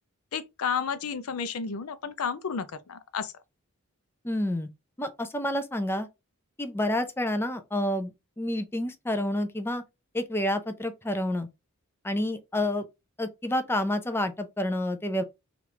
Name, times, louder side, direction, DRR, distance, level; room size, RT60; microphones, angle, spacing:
voice 1, 0.3-3.3, left 6 dB, 85° left, 0.5 m, -32 dB
voice 2, 4.2-4.7 5.0-6.1 6.6-9.8 10.1-11.5 12.0-12.8 13.2-15.2, left 1 dB, 10° left, 0.4 m, -29 dB
3.1 x 2.5 x 3.1 m
head